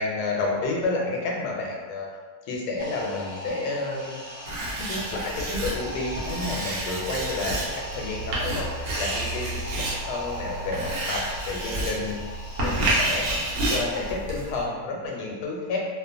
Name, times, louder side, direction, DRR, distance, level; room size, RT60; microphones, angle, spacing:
voice 1, 0.0-2.1 2.4-4.2 4.5-8.7 9.0-12.2 12.6-13.3 13.7-15.8, left 3 dB, 85° left, -1 dB, 1.1 m, -30 dB
sound 1, 2.8-14.1, right 1 dB, 15° left, 0.5 m, -39 dB
Writing, 4.5-14.6, right 1 dB, 70° right, 1.1 m, -30 dB
2.8 x 2.1 x 2.5 m, 1.5 s
omnidirectional pair, 1.7 m